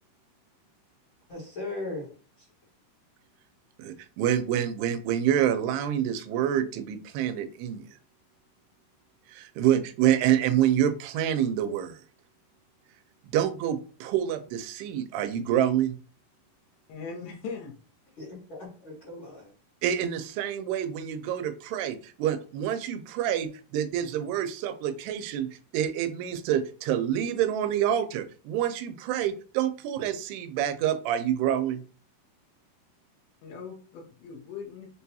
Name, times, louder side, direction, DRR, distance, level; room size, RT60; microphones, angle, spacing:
voice 1, 1.3-2.1 2.4-2.5 18.2-19.5, left 2 dB, 55° left, -7 dB, 1.5 m, -38 dB
voice 2, 3.8-7.8 9.3-12.0 13.3-16.0 19.8-25.5 25.7-31.8, right 10 dB, 90° right, 10 dB, 2.6 m, -27 dB
voice 3, 16.9-17.7 33.4-34.9, left 5 dB, 80° left, 1 dB, 2.7 m, -39 dB
6.5 x 2.3 x 2.7 m, 0.40 s
omnidirectional pair, 4.5 m